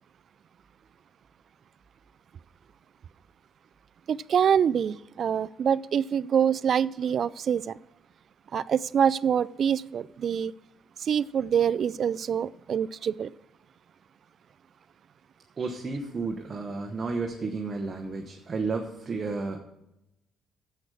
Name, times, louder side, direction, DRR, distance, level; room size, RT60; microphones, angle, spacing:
voice 1, 4.1-7.8 8.5-10.5 11.0-13.3, right 8 dB, 45° right, 19 dB, 0.3 m, -25 dB
voice 2, 15.6-19.6, right 4 dB, 30° right, 2 dB, 1.0 m, -32 dB
10.5 x 7.8 x 4.9 m, 0.86 s
cardioid pair, 145°, 0 cm